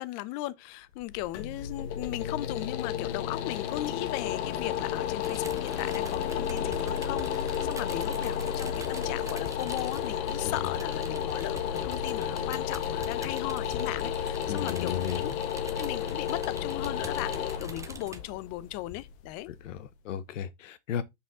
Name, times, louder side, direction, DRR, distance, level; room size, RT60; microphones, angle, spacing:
voice 1, 0.0-15.3 15.8-19.5, left 17 dB, 45° left, 0.7 m, -37 dB
sound 1, 0.9-19.9, left 9 dB, 65° left, 1.2 m, -32 dB
sound 2, 5.2-18.2, right 4 dB, 10° right, 0.7 m, -47 dB
voice 2, 14.5-15.4 19.5-21.0, left 9 dB, 85° left, 1.0 m, -35 dB
5.7 x 4.9 x 3.7 m
supercardioid pair, 120°, 37 cm